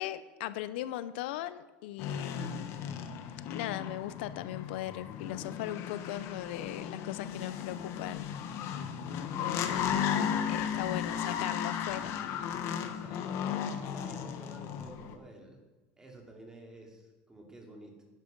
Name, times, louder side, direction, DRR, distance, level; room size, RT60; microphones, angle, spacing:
voice 1, 0.0-2.7 3.5-8.3 9.4-10.0 10.5-12.2, left 13 dB, 85° left, 15 dB, 0.6 m, -38 dB
sound 1, 2.0-15.2, left 8 dB, 55° left, 1.2 m, -35 dB
voice 2, 12.8-15.6 16.0-18.0, right 1 dB, 10° right, 1 dB, 2.8 m, -51 dB
11.0 x 11.0 x 5.3 m, 1.2 s
supercardioid pair, 135°, 6 cm